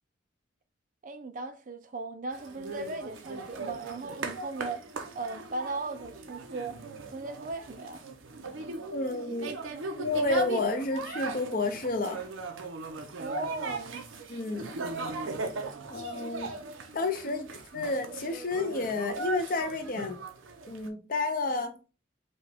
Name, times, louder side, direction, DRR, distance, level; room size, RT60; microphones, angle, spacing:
voice 1, 1.0-4.8 5.1-6.8 7.1-8.0 13.2-14.1 17.3-17.5, right 3 dB, 40° right, 0.4 m, -37 dB
sound 1, 2.3-20.9, right 3 dB, 80° right, 0.7 m, -38 dB
voice 2, 8.9-9.5 10.0-12.2 14.3-14.7 15.9-16.6 16.9-20.2 20.7-21.8, left 3 dB, 45° left, 0.7 m, -30 dB
5.2 x 2.3 x 3.5 m
head